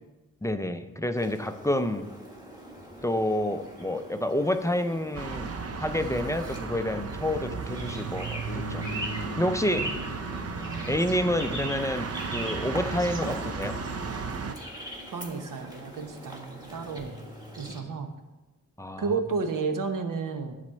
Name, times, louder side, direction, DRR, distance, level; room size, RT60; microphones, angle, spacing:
voice 1, 0.4-2.1 3.0-8.9 9.4-10.0 10.9-13.8 18.8-19.2, left 1 dB, 10° left, 9 dB, 0.4 m, -29 dB
sound 1, 1.2-17.8, right 1 dB, 10° right, 1.5 m, -41 dB
Street Traffic, 5.1-14.5, right 5 dB, 45° right, 0.6 m, -34 dB
Bass guitar, 8.5-12.6, left 7 dB, 65° left, 0.7 m, -44 dB
voice 2, 15.1-17.2 17.6-18.1 19.0-20.6, right 4 dB, 75° right, 6 dB, 1.1 m, -32 dB
10.5 x 4.2 x 7.4 m, 1.1 s
wide cardioid pair, 135°, 33 cm